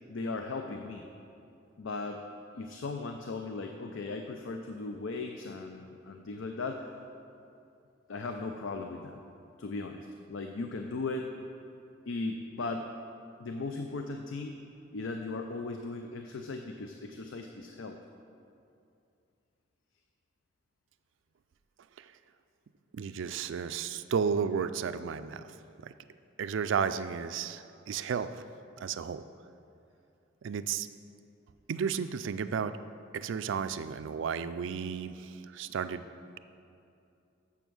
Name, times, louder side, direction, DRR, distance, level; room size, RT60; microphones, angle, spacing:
voice 1, 0.1-1.0 1.8-2.2 2.6-6.8 8.1-9.2 9.6-11.3 12.1-12.9 13.4-14.6 14.9-18.0, left 3 dB, 70° left, 4 dB, 0.5 m, -37 dB
voice 2, 22.9-25.5 25.8-25.9 26.4-28.4 28.8-29.2 30.4-30.9 31.7-32.8 33.1-36.1, right 6 dB, 65° right, 12 dB, 0.4 m, -33 dB
7.2 x 7.1 x 6.1 m, 2.6 s
head